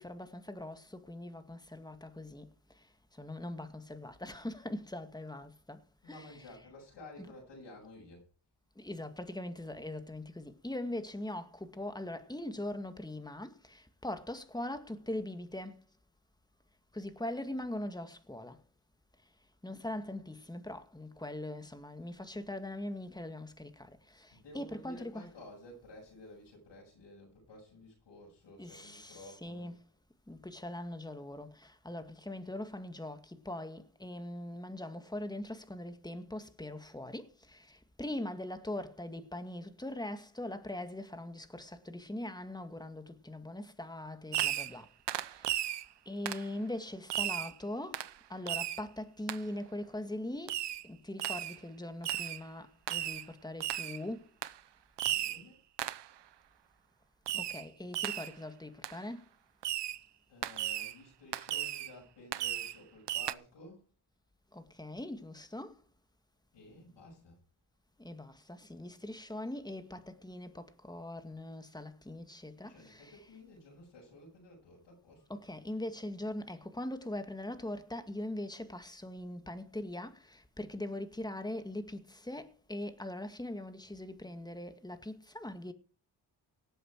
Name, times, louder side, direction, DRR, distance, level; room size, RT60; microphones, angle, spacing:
voice 1, 0.0-2.5 3.2-5.8 6.1-6.3 8.8-15.8 16.9-18.6 19.6-23.7 24.2-24.3 24.5-25.3 28.6-29.7 30.3-44.9 46.1-48.0 48.3-50.6 50.8-54.2 57.3-59.2 64.5-65.7 68.0-73.2 75.3-85.7, left 1 dB, 10° left, 2.2 m, -41 dB
voice 2, 6.0-8.3 24.3-29.7 55.0-55.6 60.3-63.8 66.5-67.4 72.6-75.2, left 1 dB, 90° left, 7.1 m, -53 dB
Fireworks, 44.3-44.8 45.1-45.8 46.3-46.5 47.1-47.5 47.9-48.1 48.5-48.8 49.3-49.4 50.5-50.8 51.2-51.6 52.0-52.4 52.9-53.3 53.6-54.0 54.4-54.6 55.0-55.4 55.8-56.1 57.3-57.7 57.9-58.3 58.8-59.0 59.6-60.0 60.4-60.9 61.3-61.9 62.3-62.8 63.1-63.3, right 12 dB, 75° right, 0.8 m, -35 dB
18.5 x 7.9 x 4.8 m
cardioid pair, 55°, 42 cm